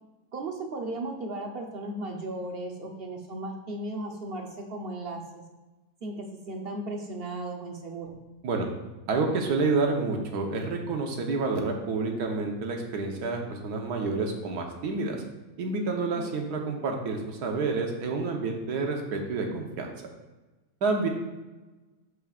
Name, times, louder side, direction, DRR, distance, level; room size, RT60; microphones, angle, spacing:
voice 1, 0.3-5.4 6.0-8.1 16.1-16.4, right 2 dB, 50° right, 2 dB, 0.7 m, -36 dB
voice 2, 9.1-15.2 15.6-19.9 20.8-21.1, right 3 dB, 80° right, 2 dB, 1.5 m, -29 dB
12.5 x 4.8 x 2.4 m, 1.1 s
omnidirectional pair, 1.7 m